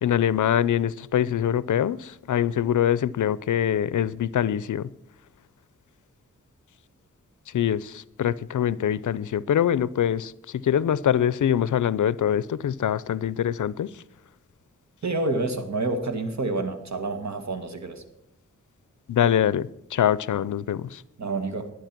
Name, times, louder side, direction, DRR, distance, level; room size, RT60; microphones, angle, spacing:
voice 1, 0.0-4.9 7.5-13.9 19.1-21.0, left 10 dB, 75° left, 0.5 m, -24 dB
voice 2, 15.0-18.0 21.2-21.7, right 2 dB, 60° right, 1.7 m, -28 dB
12.0 x 10.0 x 5.9 m
cardioid pair, 65°, 31 cm